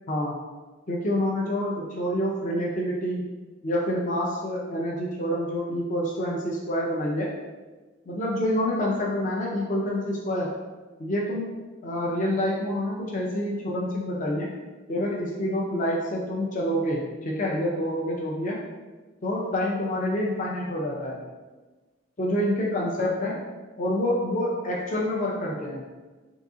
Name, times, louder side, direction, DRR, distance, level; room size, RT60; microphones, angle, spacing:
voice 1, 0.9-3.2 3.6-7.3 8.1-10.5 11.0-11.5 11.8-14.5 14.9-18.6 19.2-21.2 22.2-23.3 23.8-25.8, left 1 dB, 40° left, -3 dB, 0.5 m, -27 dB
3.8 x 2.7 x 3.6 m, 1.3 s
head